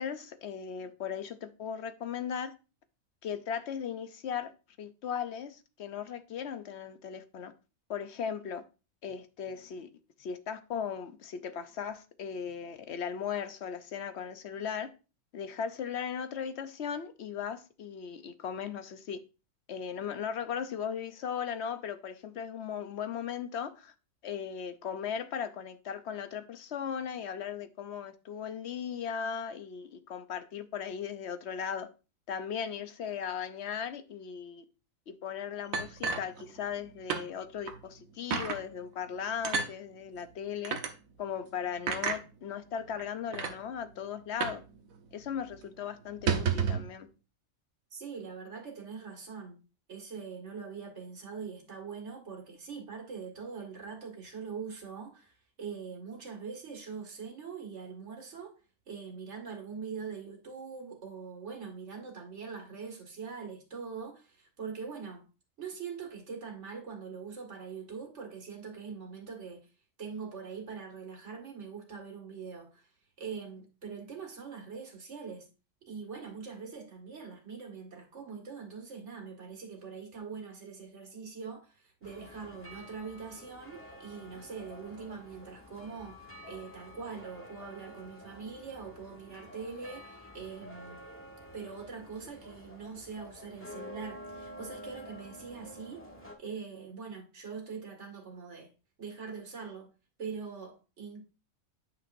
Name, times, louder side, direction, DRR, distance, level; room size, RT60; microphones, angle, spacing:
voice 1, 0.0-2.5 3.2-4.5 4.8-7.5 7.9-8.6 9.0-9.9 10.2-14.9 15.3-19.2 19.7-23.9 24.2-31.9 32.3-34.6 35.1-40.8 41.2-44.6 45.1-47.1, left 7 dB, 60° left, 0.9 m, -37 dB
sound 1, 35.7-36.8 37.1-37.3 37.7-37.8 38.3-38.6 39.4-39.7 40.6-40.9 41.9-42.2 43.0-43.1 43.3-43.6 44.4-44.7 44.9-45.0 45.4-45.6 46.1-46.9, right 6 dB, 90° right, 1.4 m, -31 dB
voice 2, 47.9-49.6 49.9-58.5 58.9-65.2 65.6-69.6 70.0-72.9 73.2-75.5 75.9-91.0 91.5-96.1 96.4-98.7 99.0-99.9 100.2-101.2, right 5 dB, 60° right, 2.2 m, -43 dB
sound 2, 82.0-96.4, left 1 dB, 10° left, 1.3 m, -49 dB
9.1 x 5.9 x 2.6 m
omnidirectional pair, 1.4 m